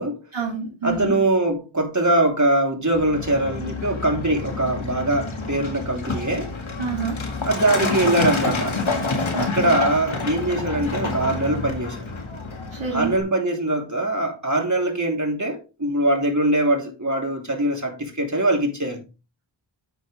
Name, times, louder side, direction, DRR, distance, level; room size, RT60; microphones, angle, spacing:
voice 1, 0.3-1.1 6.8-7.2 9.3-9.7 12.7-13.1, right 5 dB, 85° right, 2.9 m, -28 dB
voice 2, 0.8-6.5 7.4-8.7 9.4-12.0 12.9-19.0, right 1 dB, 40° right, 3.2 m, -22 dB
Truck, 2.9-13.2, left 3 dB, 80° left, 1.8 m, -28 dB
9.6 x 8.2 x 3.3 m
wide cardioid pair, 40°, 46 cm